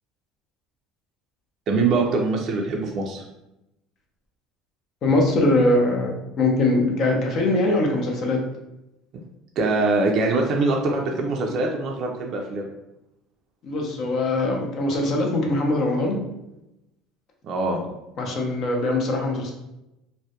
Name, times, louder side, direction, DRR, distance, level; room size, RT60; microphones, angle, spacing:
voice 1, 1.7-3.2 9.6-12.7 17.4-17.8, right 3 dB, 50° right, 1 dB, 0.3 m, -23 dB
voice 2, 5.0-8.4 13.6-16.2 18.2-19.5, left 2 dB, 50° left, 1 dB, 0.5 m, -22 dB
2.2 x 2.0 x 2.7 m, 0.90 s
cardioid pair, 120°, 0 cm